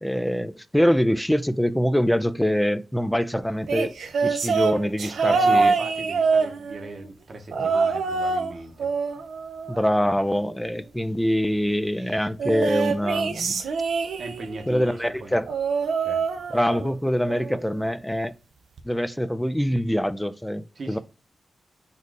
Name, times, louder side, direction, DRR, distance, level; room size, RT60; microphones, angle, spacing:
voice 1, 0.0-3.9 4.2-5.7 9.7-13.6 14.7-15.5 16.5-18.3 18.8-21.0, equal, 5° left, 0.3 m, -24 dB
sound 1, 3.7-7.0 7.5-8.5 8.8-10.3 12.4-14.6 15.5-17.0 17.3-17.7 18.8-18.9, right 4 dB, 85° right, 0.6 m, -25 dB
voice 2, 5.2-8.9 14.2-15.4 16.0-16.3 20.7-21.0, right 3 dB, 50° right, 0.9 m, -38 dB
4.1 x 2.6 x 4.6 m
wide cardioid pair, 115°, 0 cm